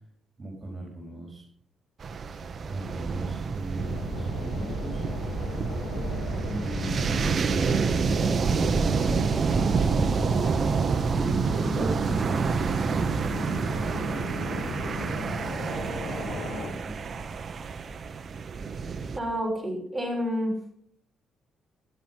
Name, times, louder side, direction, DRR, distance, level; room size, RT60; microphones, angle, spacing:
voice 1, 0.4-1.5 2.6-5.0 6.5-10.8 11.1-15.4 15.9-17.2, right 1 dB, 25° right, 0 dB, 4.4 m, -39 dB
sound 1, 2.0-19.2, right 5 dB, 45° right, 1.2 m, -28 dB
sound 2, 3.8-16.7, left 3 dB, 80° left, 2.8 m, -37 dB
voice 2, 11.7-12.2 19.1-20.5, equal, 5° right, -2 dB, 6.8 m, -30 dB
13.5 x 10.5 x 5.8 m, 0.66 s
cardioid pair, 90°, 0 cm